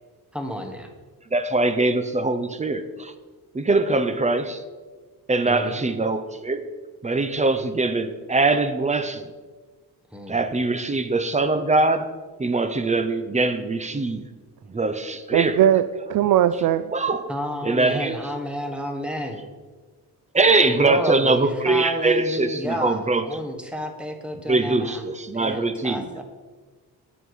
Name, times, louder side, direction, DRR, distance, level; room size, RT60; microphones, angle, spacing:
voice 1, 0.3-0.9 5.5-5.8 10.1-10.4 17.3-19.4 20.7-25.0 25.3-26.2, equal, 5° right, 1.2 m, -31 dB
voice 2, 1.3-3.1 3.5-4.6 5.3-6.7 7.0-9.2 10.3-12.1 12.4-14.2 14.7-15.7 16.9-17.3 17.6-18.2 20.3-23.2 24.5-26.1, right 3 dB, 20° right, 0.6 m, -22 dB
voice 3, 15.3-15.8 16.1-16.8, right 11 dB, 60° right, 0.5 m, -18 dB
8.9 x 8.2 x 4.8 m
cardioid pair, 115°, 37 cm